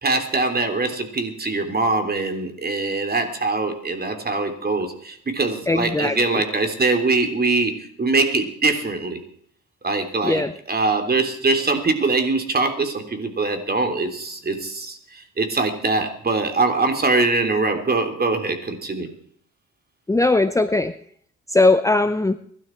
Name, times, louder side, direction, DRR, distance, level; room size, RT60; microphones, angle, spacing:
voice 1, 0.0-7.7 8.0-9.2 9.8-19.1, right 3 dB, 30° right, 6 dB, 3.4 m, -22 dB
voice 2, 5.7-6.4 10.2-10.5 20.1-20.9 21.5-22.4, left 2 dB, 10° left, 11 dB, 0.7 m, -19 dB
23.0 x 12.5 x 4.6 m, 0.62 s
cardioid pair, 90°, 30 cm